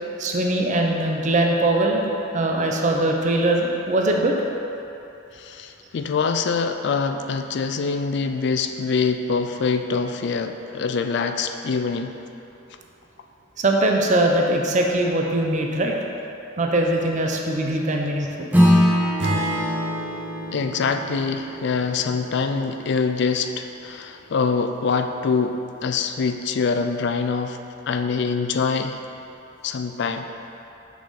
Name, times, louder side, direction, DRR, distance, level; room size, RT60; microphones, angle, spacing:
voice 1, 0.2-4.4 13.6-15.9 16.6-18.5, right 1 dB, 40° right, 1 dB, 0.6 m, -21 dB
voice 2, 5.3-12.2 20.5-27.6 27.9-29.0 29.6-30.3, left 5 dB, 60° left, 7 dB, 0.4 m, -24 dB
Acoustic guitar / Strum, 18.5-23.3, equal, 10° right, 1.0 m, -23 dB
Acoustic guitar / Strum 2, 19.2-23.4, equal, 60° right, 1.1 m, -31 dB
6.0 x 5.8 x 4.1 m, 2.8 s
head